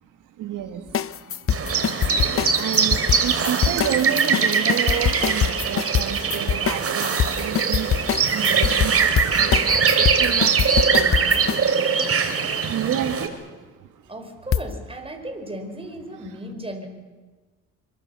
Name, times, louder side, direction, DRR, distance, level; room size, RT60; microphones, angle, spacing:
voice 1, 0.4-0.9 2.0-7.9 8.3-10.8 12.6-13.5, right 10 dB, 85° right, 7 dB, 2.0 m, -30 dB
sound 1, 0.9-11.6 14.5-14.7, left 8 dB, 45° left, 0.8 m, -24 dB
sound 2, 1.5-13.3, right 6 dB, 50° right, 3.3 m, -22 dB
voice 2, 11.1-11.8 14.1-16.9, right 1 dB, 20° right, 5 dB, 5.1 m, -36 dB
25.5 x 23.0 x 7.1 m, 1.3 s
cardioid pair, 90°, 30 cm